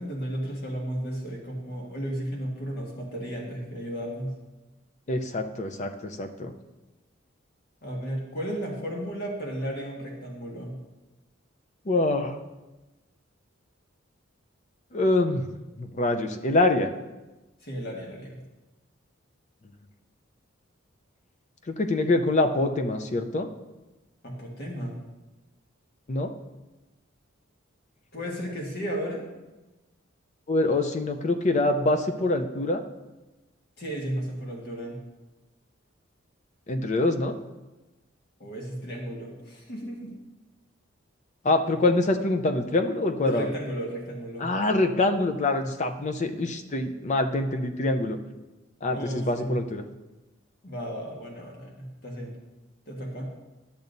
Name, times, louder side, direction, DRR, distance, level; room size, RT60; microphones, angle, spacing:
voice 1, 0.0-4.3 7.8-10.8 17.6-18.4 24.2-25.0 28.1-29.3 33.8-35.0 38.4-40.1 43.2-44.5 48.9-49.6 50.6-52.4 52.9-53.3, equal, 55° left, -1 dB, 1.6 m, -34 dB
voice 2, 5.1-6.5 11.9-12.4 14.9-15.5 15.8-16.9 21.7-23.5 26.1-26.3 30.5-32.8 36.7-37.4 41.4-43.5 44.4-48.2 48.8-49.9, left 2 dB, 35° left, 7 dB, 0.6 m, -25 dB
12.0 x 7.0 x 2.6 m, 1.1 s
head